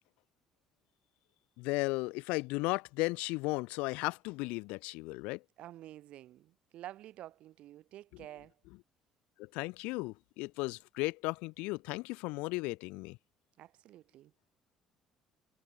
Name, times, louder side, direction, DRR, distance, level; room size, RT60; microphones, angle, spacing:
voice 1, 1.6-5.4 9.4-13.2, left 24 dB, 75° left, 0.6 m, -35 dB
voice 2, 5.6-8.5 13.6-14.3, right 13 dB, 65° right, 7.9 m, -50 dB
hypercardioid pair, 55°, 2 cm